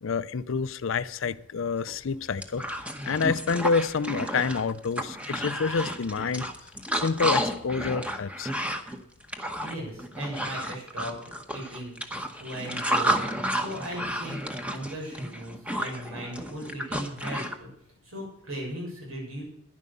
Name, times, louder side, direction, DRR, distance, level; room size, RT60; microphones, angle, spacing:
voice 1, 0.0-2.7 3.1-6.5 7.0-8.5 10.4-10.5, left 5 dB, 70° left, 0.5 m, -28 dB
sound 1, 1.9-2.0 2.3-17.6, equal, 5° right, 1.0 m, -31 dB
voice 2, 9.6-12.0 12.4-13.2 13.5-14.3 14.6-17.7 18.0-19.4, equal, 90° right, 6.9 m, -37 dB
11.0 x 10.5 x 6.7 m
head